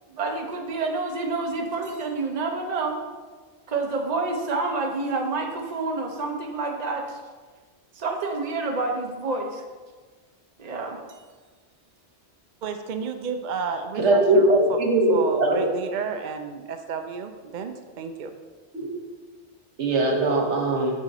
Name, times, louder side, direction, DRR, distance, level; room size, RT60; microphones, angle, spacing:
voice 1, 0.1-3.0 3.7-7.2 7.9-9.6 10.6-11.0, right 3 dB, 40° right, 2 dB, 0.9 m, -28 dB
voice 2, 12.6-14.8 15.1-17.7 18.0-18.3, right 6 dB, 55° right, 6 dB, 0.5 m, -32 dB
voice 3, 14.0-15.6 18.7-18.9 19.8-20.9, right 2 dB, 75° right, 1 dB, 1.4 m, -20 dB
6.4 x 6.2 x 4.2 m, 1.4 s
omnidirectional pair, 1.2 m